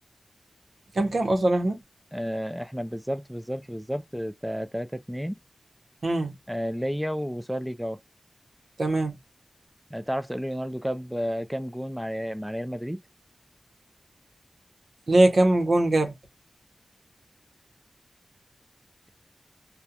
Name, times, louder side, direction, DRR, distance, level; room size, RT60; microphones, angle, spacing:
voice 1, 0.9-1.8 6.0-6.3 8.8-9.1 15.1-16.1, right 1 dB, 65° right, 0.8 m, -21 dB
voice 2, 2.1-5.4 6.5-8.0 9.9-13.0, equal, 5° right, 0.4 m, -31 dB
2.4 x 2.1 x 2.7 m
wide cardioid pair, 70°, 0 cm